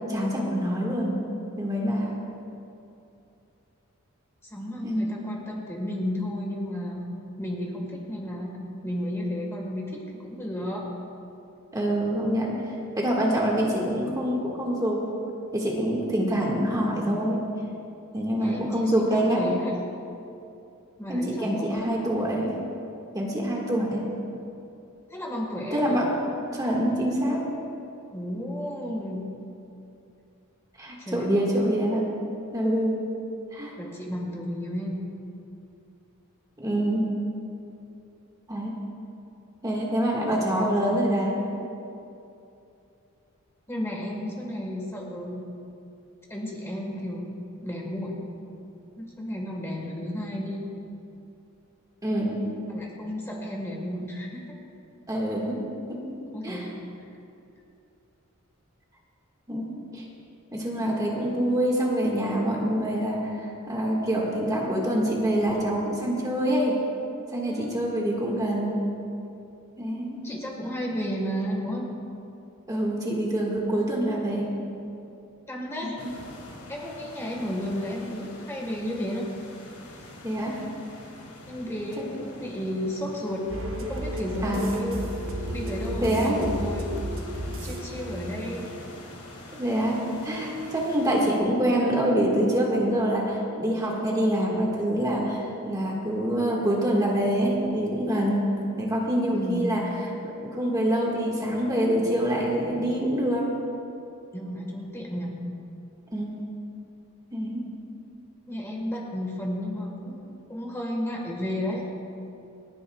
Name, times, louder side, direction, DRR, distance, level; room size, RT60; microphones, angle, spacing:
voice 1, 0.1-1.2 1.6-2.1 4.8-5.1 11.7-12.5 13.0-15.0 15.5-17.4 18.1-19.4 21.1-22.5 23.1-24.1 25.7-26.1 26.5-27.5 30.8-32.1 32.5-33.0 33.5-33.7 36.6-37.1 38.5-38.7 39.6-41.4 52.0-52.5 55.1-55.6 55.9-56.0 56.4-56.6 59.5-60.0 60.5-66.8 67.3-68.8 69.8-70.2 72.7-74.5 75.8-76.1 80.2-80.5 84.4-84.8 86.0-86.4 89.6-98.5 98.8-99.8 100.5-103.5 106.1-106.5 107.3-107.7, right 1 dB, 15° right, -3 dB, 1.7 m, -25 dB
voice 2, 4.4-7.1 7.4-10.8 18.4-19.7 21.0-22.2 25.1-25.9 28.1-29.2 31.0-31.7 33.8-35.0 40.2-41.0 43.7-45.4 46.3-47.3 47.6-48.3 49.0-50.7 52.7-54.4 56.3-56.8 67.4-67.8 70.2-71.8 75.5-76.0 76.7-79.3 81.5-83.5 83.8-85.1 85.5-86.9 87.6-88.6 99.3-99.7 104.3-105.3 108.5-111.8, equal, 10° left, -2 dB, 1.5 m, -33 dB
sound 1, 76.0-91.4, left 1 dB, 80° left, 2.5 m, -45 dB
sound 2, 83.5-89.2, equal, 65° right, 1.1 m, -33 dB
29.0 x 9.8 x 2.3 m, 2.7 s
head